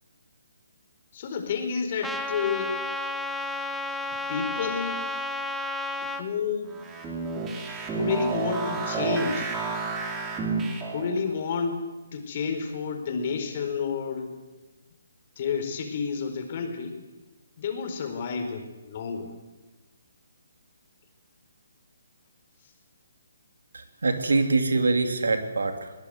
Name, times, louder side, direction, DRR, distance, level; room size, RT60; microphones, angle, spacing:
voice 1, 1.1-2.8 4.3-5.1 6.0-6.8 7.9-9.5 10.9-11.8 12.1-14.3 15.4-17.0 17.6-19.3, left 5 dB, 45° left, 6 dB, 4.6 m, -30 dB
Trumpet, 2.0-6.2, left 2 dB, ahead, 1.4 m, -32 dB
sound 1, 6.7-11.2, right 4 dB, 15° right, 4.0 m, -30 dB
voice 2, 23.7-25.9, right 3 dB, 75° right, 7 dB, 3.1 m, -24 dB
22.5 x 20.0 x 8.1 m, 1.2 s
figure-of-eight pair, 145°, 0 cm